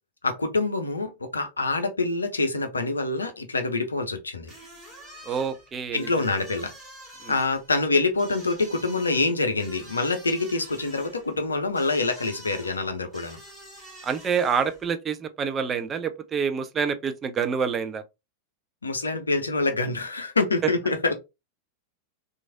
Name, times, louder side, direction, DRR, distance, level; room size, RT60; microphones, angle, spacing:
voice 1, 0.2-4.5 5.9-6.7 7.3-13.4 18.8-21.1, left 3 dB, 75° left, 0.5 m, -26 dB
sound 1, 4.4-14.9, right 1 dB, ahead, 1.7 m, -47 dB
voice 2, 5.3-6.1 7.2-7.3 14.0-18.0 20.6-20.7, right 6 dB, 20° right, 0.4 m, -27 dB
3.0 x 2.5 x 2.5 m
figure-of-eight pair, 90°, 0 cm